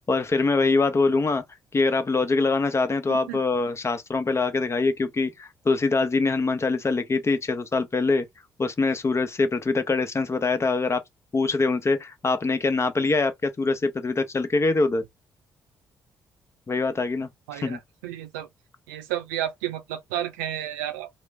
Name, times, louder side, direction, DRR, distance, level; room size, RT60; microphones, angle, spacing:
voice 1, 0.0-1.4 1.7-8.3 8.6-11.0 11.3-15.0 16.7-17.8, left 3 dB, 30° left, 0.7 m, -24 dB
voice 2, 3.1-3.4 17.5-18.5 18.9-21.1, right 12 dB, 75° right, 0.6 m, -32 dB
3.0 x 2.0 x 3.4 m
figure-of-eight pair, 40°, 10 cm